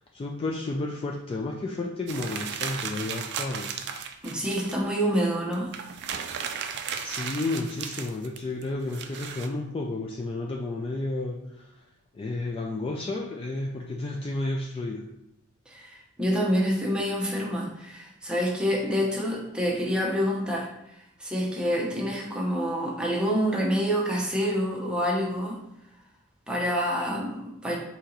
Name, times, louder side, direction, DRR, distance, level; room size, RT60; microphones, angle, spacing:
voice 1, 0.1-3.7 7.0-11.8 12.1-15.1, left 2 dB, 25° left, 0 dB, 0.3 m, -32 dB
sound 1, 2.1-4.8 5.2-5.3 5.5-9.5, right 7 dB, 50° right, 0.4 m, -35 dB
voice 2, 4.2-5.7 15.7-25.6 26.5-27.8, equal, 5° right, -2 dB, 0.7 m, -27 dB
4.4 x 2.8 x 3.8 m, 0.84 s
head